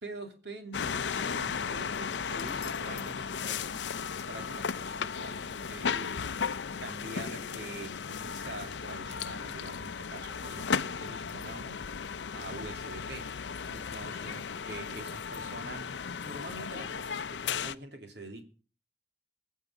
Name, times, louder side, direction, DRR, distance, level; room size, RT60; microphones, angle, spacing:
voice 1, 0.0-6.2 6.8-12.0 12.3-13.3 13.7-18.4, right 2 dB, 75° right, 2.7 m, -45 dB
sound 1, 0.7-17.8, left 6 dB, 90° left, 0.6 m, -35 dB
21.5 x 7.5 x 4.9 m
head